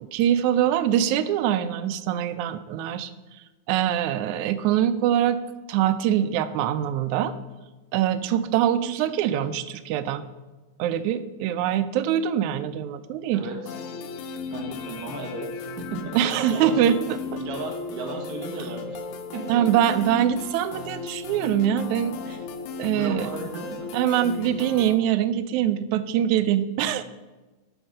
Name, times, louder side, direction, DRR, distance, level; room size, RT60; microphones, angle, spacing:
voice 1, 0.0-3.1 3.7-5.4 5.7-7.3 7.9-10.2 10.8-13.4 16.1-17.2 19.5-22.4 22.8-23.3 23.9-27.0, right 10 dB, 80° right, 13 dB, 1.9 m, -23 dB
voice 2, 13.3-13.8 14.5-16.9 17.4-19.0 19.3-19.6 22.9-24.0, right 3 dB, 60° right, 1 dB, 1.0 m, -35 dB
sound 1, 13.7-24.9, left 5 dB, 90° left, 2.2 m, -36 dB
7.9 x 6.5 x 6.4 m, 1.2 s
omnidirectional pair, 3.4 m